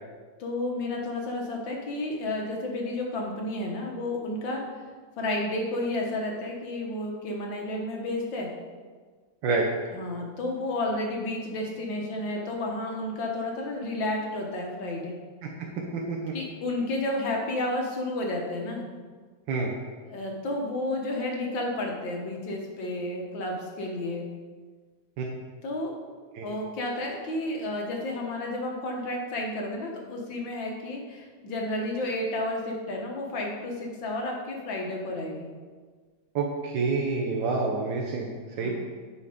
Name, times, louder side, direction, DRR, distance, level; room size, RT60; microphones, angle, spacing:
voice 1, 0.4-4.8 5.2-8.5 9.9-15.1 16.3-18.9 20.1-24.2 25.6-25.9 26.4-35.5 38.6-38.7, left 1 dB, 90° left, 0 dB, 2.1 m, -31 dB
voice 2, 15.9-16.3 19.5-19.7 25.2-25.3 26.3-26.5 36.3-38.7, right 4 dB, 80° right, -1 dB, 1.6 m, -28 dB
9.7 x 4.9 x 5.1 m, 1.5 s
omnidirectional pair, 2.0 m